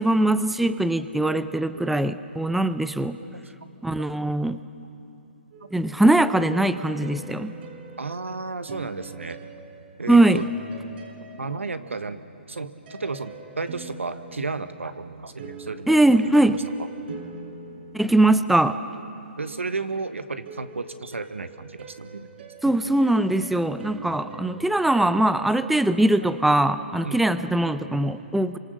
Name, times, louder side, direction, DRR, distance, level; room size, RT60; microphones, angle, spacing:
voice 1, 0.0-3.2 3.8-4.6 5.7-7.5 10.1-10.5 15.9-16.6 17.9-18.8 22.6-28.6, right 1 dB, ahead, 12 dB, 0.6 m, -21 dB
voice 2, 1.2-2.1 3.2-3.4 4.0-4.1 5.6-5.7 8.0-9.5 10.0-10.5 11.4-12.2 12.5-16.6 17.0-17.2 19.4-22.5 22.8-22.9 27.0-28.1, right 3 dB, 90° right, 11 dB, 1.3 m, -34 dB
sound 1, 5.5-12.1 12.9-18.8 20.5-24.9, right 3 dB, 55° right, 5.3 m, -43 dB
28.5 x 26.0 x 6.5 m, 2.8 s
hypercardioid pair, 135°, 7 cm